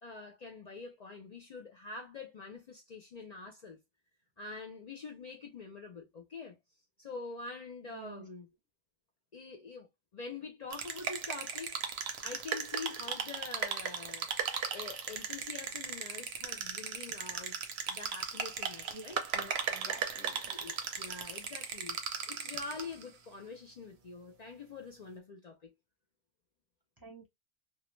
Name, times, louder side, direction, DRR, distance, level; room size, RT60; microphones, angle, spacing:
voice 1, 0.0-3.8 4.4-6.6 7.0-8.5 9.3-11.8 12.2-14.3 14.7-17.6 17.9-19.2 20.5-22.0 22.3-25.7, left 4 dB, 55° left, 0.5 m, -45 dB
voice 2, 7.9-8.2 18.8-19.0 19.3-20.5 27.0-27.3, right 1 dB, 25° right, 0.7 m, -49 dB
sound 1, 10.7-23.0, right 6 dB, 90° right, 0.9 m, -37 dB
2.3 x 2.0 x 3.0 m
omnidirectional pair, 1.0 m